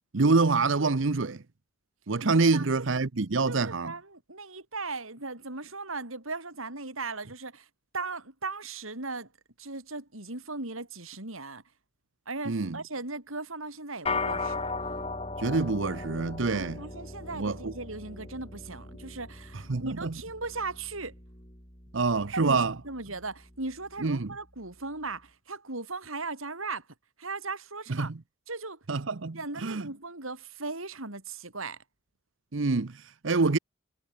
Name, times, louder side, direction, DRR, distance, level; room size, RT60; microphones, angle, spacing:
voice 1, 0.1-1.4 2.1-3.9 12.5-12.8 15.4-16.8 17.3-17.7 19.7-20.1 21.9-22.7 24.0-24.3 27.9-28.2 28.9-29.9 32.5-33.6, right 3 dB, 70° right, 0.8 m, -26 dB
voice 2, 2.2-2.8 3.5-7.7 7.9-9.3 9.6-11.6 12.3-14.7 16.4-21.1 22.3-26.8 27.2-28.1 28.5-28.8 29.3-31.8, right 3 dB, 85° right, 6.1 m, -38 dB
sound 1, 14.1-23.6, left 3 dB, 30° left, 6.7 m, -38 dB
head